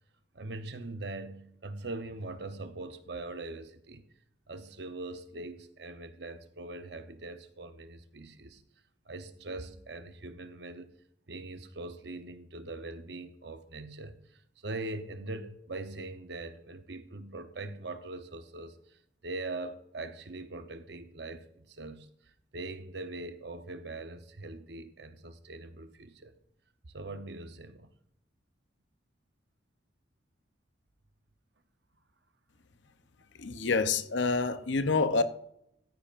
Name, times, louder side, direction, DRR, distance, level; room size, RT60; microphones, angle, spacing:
voice 1, 0.3-4.1 4.5-8.6 9.1-10.9 11.3-26.3 26.9-27.9, right 2 dB, 60° right, 0.8 m, -42 dB
voice 2, 33.4-35.2, left 4 dB, 70° left, 0.7 m, -27 dB
14.0 x 9.7 x 2.5 m
head